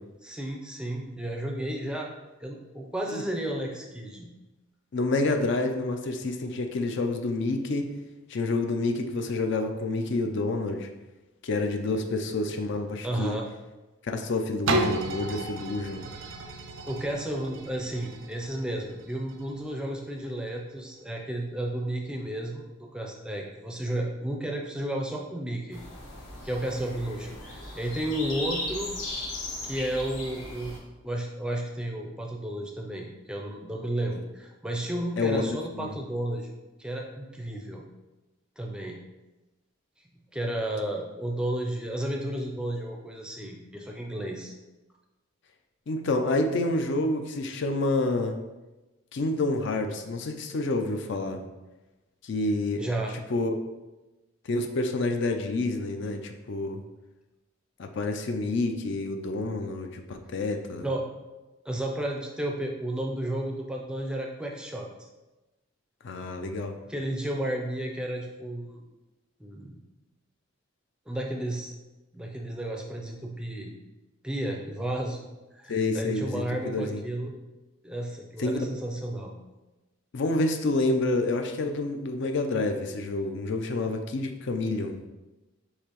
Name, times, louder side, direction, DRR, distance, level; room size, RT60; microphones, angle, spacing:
voice 1, 0.2-2.1 2.4-4.3 13.0-13.5 16.8-25.8 26.4-28.9 29.6-30.7 31.0-36.5 36.8-37.8 38.6-39.0 40.3-44.5 52.8-53.1 60.8-61.1 61.7-64.9 66.9-68.8 69.4-69.7 71.1-71.7 72.1-73.7 74.2-75.2 75.5-77.3 77.8-79.4, right 1 dB, 5° right, 0 dB, 0.4 m, -32 dB
voice 2, 4.9-7.8 8.3-10.9 11.4-13.4 14.0-16.1 35.2-35.9 45.9-48.4 49.1-51.4 52.2-52.9 53.3-53.6 54.5-56.8 57.8-60.8 66.0-66.7 75.7-77.0 78.4-78.7 80.1-85.0, left 2 dB, 60° left, 5 dB, 0.4 m, -28 dB
sound 1, 14.7-20.4 21.0-21.1, right 2 dB, 65° right, 0.4 m, -33 dB
sound 2, 25.7-30.8, left 1 dB, 85° left, 1.2 m, -37 dB
6.4 x 2.8 x 3.0 m, 1.1 s
head